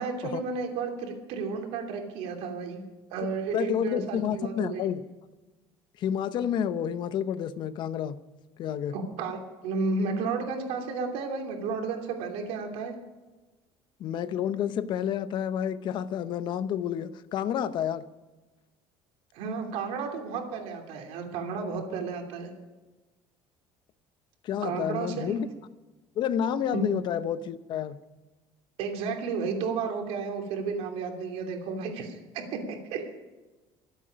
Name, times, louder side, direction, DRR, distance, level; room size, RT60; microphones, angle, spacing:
voice 1, 0.0-2.8 3.1-4.9 8.9-12.9 19.3-22.5 24.6-25.4 26.7-26.9 28.8-33.1, right 4 dB, 75° right, 3 dB, 2.9 m, -32 dB
voice 2, 3.5-5.0 6.0-8.2 8.6-8.9 14.0-18.0 24.4-25.5 26.2-28.0, left 9 dB, 45° left, 14 dB, 0.7 m, -29 dB
24.0 x 8.2 x 5.2 m, 1.2 s
cardioid pair, 160°, 11 cm